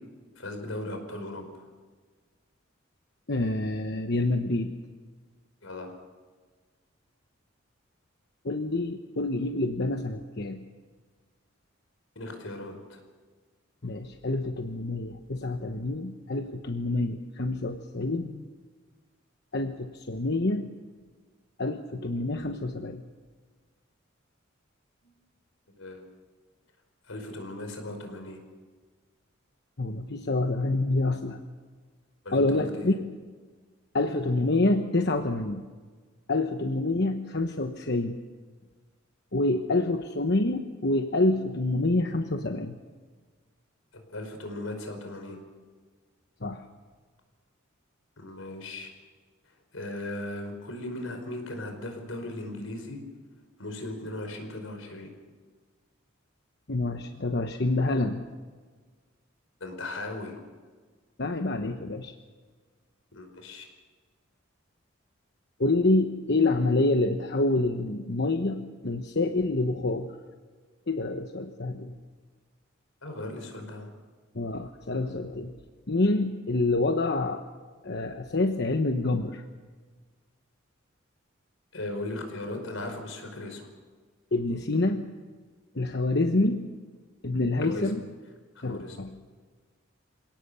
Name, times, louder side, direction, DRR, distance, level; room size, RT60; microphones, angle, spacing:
voice 1, 0.4-1.7 5.6-6.0 12.2-13.0 25.0-25.1 25.8-26.0 27.0-28.4 32.2-33.0 44.1-45.4 48.2-48.9 49.5-53.0 53.6-55.1 59.6-60.4 63.1-63.7 73.0-73.9 81.7-83.7 87.6-87.9 88.6-89.0, left 2 dB, 85° left, 5 dB, 5.2 m, -37 dB
voice 2, 3.3-4.7 8.4-10.6 13.8-18.4 19.5-20.6 21.6-23.0 29.8-31.4 32.3-32.9 33.9-35.6 36.3-38.2 39.3-42.8 46.4-46.6 56.7-58.2 61.2-62.1 65.6-70.1 70.9-71.9 74.3-75.5 75.9-77.4 77.8-79.4 84.3-85.0 85.7-86.6 87.2-88.0 88.6-89.1, left 2 dB, 55° left, 5 dB, 1.1 m, -27 dB
27.5 x 18.0 x 7.0 m, 1.5 s
head